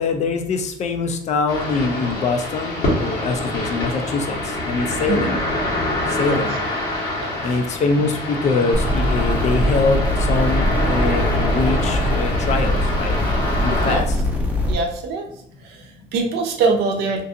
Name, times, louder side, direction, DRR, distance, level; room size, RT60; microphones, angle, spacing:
voice 1, 0.0-4.4 4.7-5.4 6.2-6.6 7.4-10.0 10.3-13.2 13.6-14.0, left 4 dB, 45° left, 6 dB, 0.4 m, -23 dB
sound 1, 1.5-14.0, left 1 dB, 75° left, 1.1 m, -25 dB
sound 2, 8.7-14.7, equal, 10° right, 0.5 m, -22 dB
voice 2, 14.7-15.3 15.6-17.2, right 4 dB, 85° right, 2 dB, 0.5 m, -23 dB
2.5 x 2.3 x 2.6 m, 0.72 s
cardioid pair, 110°, 16 cm